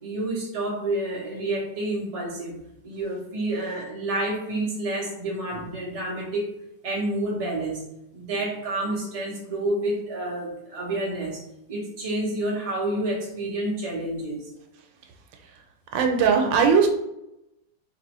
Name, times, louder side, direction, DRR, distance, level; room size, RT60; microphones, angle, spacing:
voice 1, 0.0-2.6 2.8-6.5 6.8-7.8 8.1-14.5, right 1 dB, 30° right, -3 dB, 0.7 m, -29 dB
voice 2, 15.9-16.9, right 6 dB, 85° right, 3 dB, 1.3 m, -19 dB
3.9 x 2.6 x 3.0 m, 0.85 s
omnidirectional pair, 1.9 m